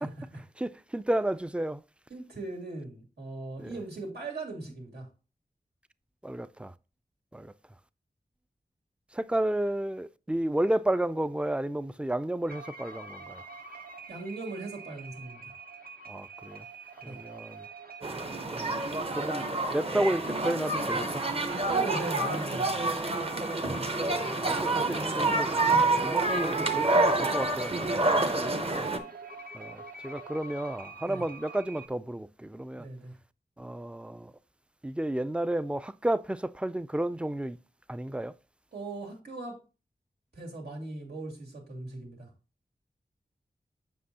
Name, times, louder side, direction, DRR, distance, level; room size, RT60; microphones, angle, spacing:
voice 1, 0.0-0.4 2.1-5.1 14.1-15.5 17.0-17.2 21.6-23.0 31.0-31.2 32.7-33.1 38.7-39.6 40.3-42.3, right 2 dB, 90° right, 2.5 m, -39 dB
voice 2, 0.6-1.8 3.6-3.8 6.2-6.7 7.3-7.5 9.1-13.4 16.1-16.6 17.0-17.6 18.5-18.8 19.1-19.4 19.7-21.2 24.1-28.9 29.5-32.9 33.6-34.3 34.8-37.6 37.9-38.4, right 1 dB, 5° right, 0.3 m, -32 dB
sound 1, 12.5-31.9, right 2 dB, 65° right, 1.0 m, -45 dB
sound 2, 18.0-29.0, right 2 dB, 35° right, 0.9 m, -28 dB
7.5 x 6.0 x 2.8 m
wide cardioid pair, 80°, 16 cm